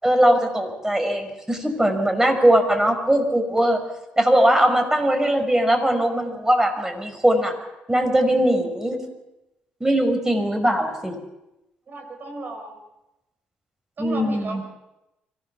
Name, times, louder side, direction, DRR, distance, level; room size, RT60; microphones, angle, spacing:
voice 1, 0.0-3.8 4.2-7.5 7.9-9.0 9.8-11.2 14.0-14.6, right 1 dB, 10° right, 5 dB, 5.6 m, -20 dB
voice 2, 11.9-12.8 14.0-14.6, right 2 dB, 45° right, 5 dB, 5.5 m, -34 dB
24.5 x 17.0 x 7.1 m, 0.92 s
hypercardioid pair, 50°, 5 cm